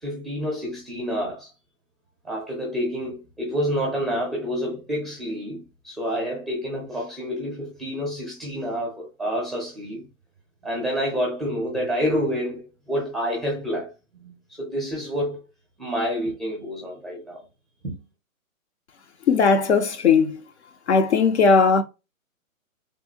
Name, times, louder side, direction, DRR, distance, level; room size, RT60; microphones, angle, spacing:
voice 1, 0.0-1.5 2.2-10.0 10.6-13.9 14.2-15.4 15.8-17.4 17.8-18.0, equal, ahead, 0.6 m, -28 dB
voice 2, 19.3-20.4 20.9-21.8, left 5 dB, 55° left, 0.5 m, -18 dB
3.5 x 2.6 x 2.7 m
hypercardioid pair, 160°, 42 cm